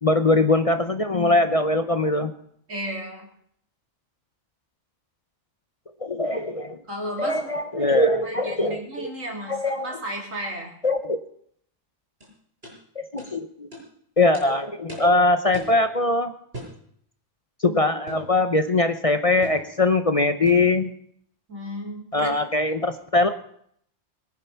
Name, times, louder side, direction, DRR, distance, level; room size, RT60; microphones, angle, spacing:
voice 1, 0.0-2.3 6.0-6.8 7.2-9.1 9.5-9.9 10.8-11.2 13.1-13.7 14.2-16.3 17.6-20.9 22.1-23.3, left 2 dB, 30° left, 8 dB, 0.8 m, -21 dB
voice 2, 2.7-3.3 6.9-7.5 7.8-7.9 8.2-10.7 21.5-22.4, equal, 90° right, 0 dB, 3.9 m, -34 dB
sound 1, 12.2-12.3 12.6-12.8 13.2-13.3 13.7-13.9 14.3-14.5 14.9-15.1 15.5-15.8 16.5-16.8 18.1-18.3 19.4-19.7 20.5-20.7, equal, 50° right, 6.8 m, -38 dB
22.0 x 9.7 x 5.8 m, 0.67 s
omnidirectional pair, 1.3 m